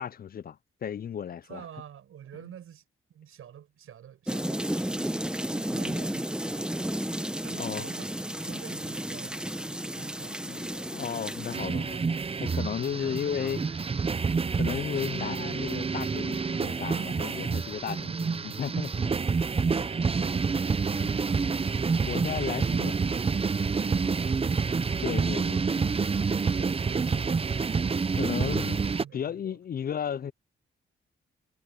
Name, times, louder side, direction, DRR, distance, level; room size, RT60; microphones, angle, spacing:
voice 1, 0.0-1.6 5.8-6.0 6.9-7.0 7.6-7.9 10.4-12.0 12.4-13.6 14.6-19.1 22.1-23.0 25.0-25.7 28.1-28.8 29.1-30.3, left 8 dB, 45° left, 0.4 m, -34 dB
voice 2, 1.5-2.8 3.1-6.7 7.4-10.7 12.8-13.8 19.4-21.5 23.9-24.4 26.5-27.5 29.0-29.6, right 9 dB, 90° right, 7.8 m, -48 dB
sound 1, 4.3-11.6, right 1 dB, 5° right, 0.9 m, -32 dB
sound 2, 11.5-29.0, right 5 dB, 25° right, 0.6 m, -28 dB
cardioid pair, 90°, 21 cm